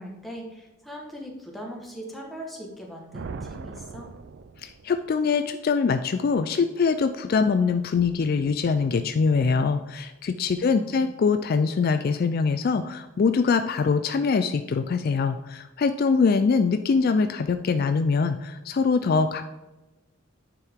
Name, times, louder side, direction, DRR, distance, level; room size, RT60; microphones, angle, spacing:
voice 1, 0.0-4.1 10.6-11.1, equal, ahead, -1 dB, 1.2 m, -40 dB
sound 1, 3.1-5.1, right 4 dB, 55° right, 0.4 m, -39 dB
voice 2, 4.6-19.4, left 5 dB, 45° left, 9 dB, 0.3 m, -23 dB
9.8 x 4.6 x 3.6 m, 1.1 s
head